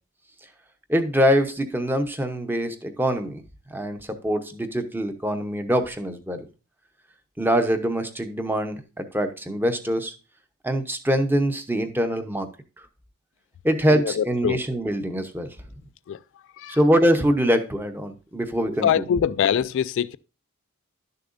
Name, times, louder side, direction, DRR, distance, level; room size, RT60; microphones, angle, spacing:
voice 1, 0.9-3.4 3.7-6.4 7.4-10.1 10.6-12.5 13.6-15.5 16.7-19.1, equal, 10° right, 0.8 m, -24 dB
voice 2, 13.9-14.6 16.1-16.2 16.6-16.8 18.8-20.2, left 8 dB, 60° left, 0.3 m, -23 dB
12.0 x 6.6 x 2.6 m
head